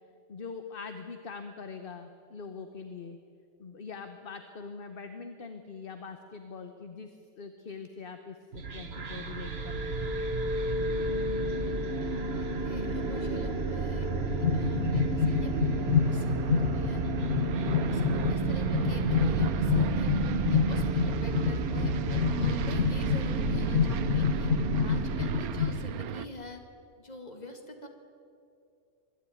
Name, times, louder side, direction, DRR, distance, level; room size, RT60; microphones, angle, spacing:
voice 1, 0.3-3.2 3.6-10.2, left 5 dB, 45° left, 7 dB, 1.0 m, -43 dB
sound 1, 8.5-26.0, right 3 dB, 45° right, 1.5 m, -31 dB
voice 2, 12.6-15.5 16.0-17.0 17.5-24.5 24.8-26.6 27.0-27.9, left 1 dB, 30° left, 4 dB, 2.1 m, -46 dB
sound 2, 14.2-25.8, left 9 dB, 65° left, 1.1 m, -29 dB
Aircraft, 15.3-26.3, right 11 dB, 85° right, 1.2 m, -37 dB
23.5 x 12.5 x 9.3 m, 2.5 s
omnidirectional pair, 1.5 m